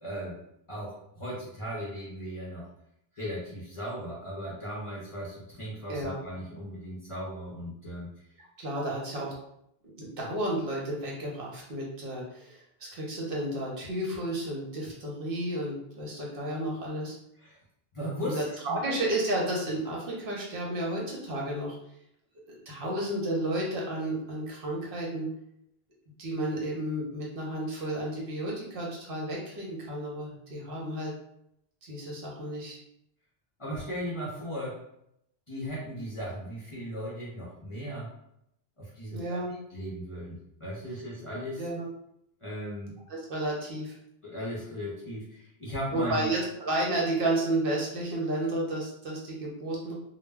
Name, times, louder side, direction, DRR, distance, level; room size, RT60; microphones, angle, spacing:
voice 1, 0.0-0.4 0.7-2.7 3.2-8.2 17.4-17.6 17.9-18.8 33.6-34.8 35.5-38.1 38.8-39.4 39.7-41.7 42.4-43.0 44.2-46.3, equal, 40° left, -6 dB, 0.6 m, -37 dB
voice 2, 5.9-6.2 8.6-9.3 10.0-17.1 18.2-21.8 22.5-25.3 26.2-31.1 31.8-32.8 39.1-39.5 41.6-41.9 43.1-44.0 45.9-49.9, right 1 dB, 60° right, -3 dB, 0.9 m, -32 dB
2.1 x 2.1 x 3.4 m, 0.76 s
omnidirectional pair, 1.1 m